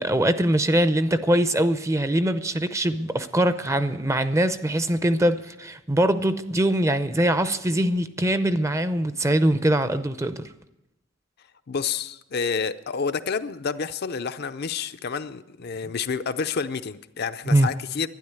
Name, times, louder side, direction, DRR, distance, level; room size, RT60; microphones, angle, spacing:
voice 1, 0.0-10.4 17.5-17.7, right 1 dB, 15° right, 12 dB, 0.6 m, -22 dB
voice 2, 11.7-18.1, left 5 dB, 55° left, 10 dB, 0.5 m, -29 dB
12.0 x 10.0 x 9.4 m, 0.93 s
head